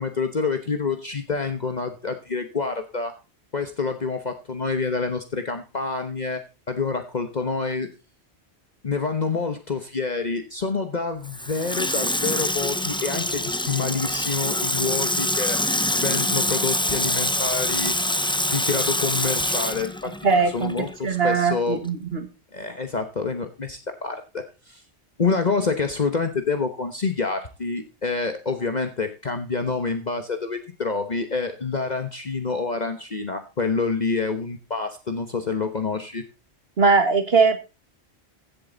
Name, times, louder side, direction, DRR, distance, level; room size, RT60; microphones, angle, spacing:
voice 1, 0.0-3.1 3.5-7.9 8.8-15.6 15.9-17.9 18.5-20.1 20.5-21.8 22.5-24.8 25.2-36.2, left 4 dB, 40° left, 7 dB, 1.3 m, -27 dB
Water tap faucet / Sink (filling or washing), 11.2-21.0 21.3-21.4, left 1 dB, 5° left, 0.5 m, -25 dB
voice 2, 20.2-22.3 36.8-37.6, right 4 dB, 65° right, 8 dB, 1.9 m, -20 dB
15.5 x 7.8 x 3.9 m, 0.29 s
omnidirectional pair, 1.1 m